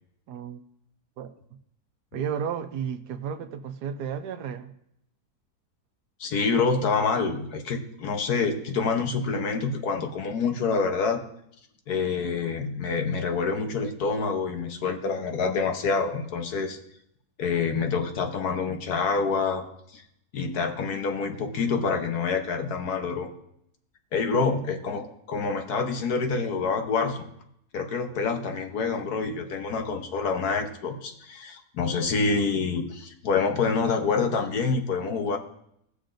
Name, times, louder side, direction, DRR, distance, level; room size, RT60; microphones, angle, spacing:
voice 1, 0.3-0.6 1.2-1.3 2.1-4.7 24.3-24.6, right 8 dB, 75° right, 9 dB, 1.3 m, -33 dB
voice 2, 6.2-11.3 11.9-16.8 17.4-19.6 19.9-20.0 20.3-23.3 24.1-27.2 27.7-35.4, left 4 dB, 70° left, 5 dB, 1.4 m, -27 dB
17.0 x 6.7 x 2.6 m, 0.75 s
omnidirectional pair, 1.8 m